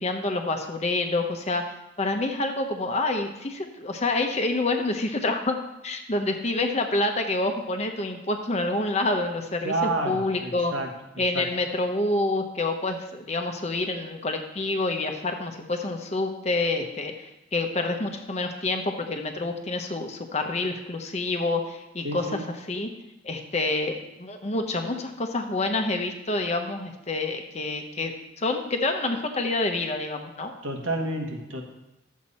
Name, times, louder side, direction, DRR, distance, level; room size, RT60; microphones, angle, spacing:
voice 1, 0.0-1.6 2.0-5.6 5.8-10.7 11.2-22.9 23.2-30.5, left 2 dB, 30° left, 4 dB, 0.8 m, -27 dB
voice 2, 9.6-11.0 11.3-11.5 22.0-22.5 30.6-31.6, right 2 dB, 70° right, 1 dB, 1.6 m, -29 dB
11.5 x 7.4 x 4.2 m, 0.92 s
head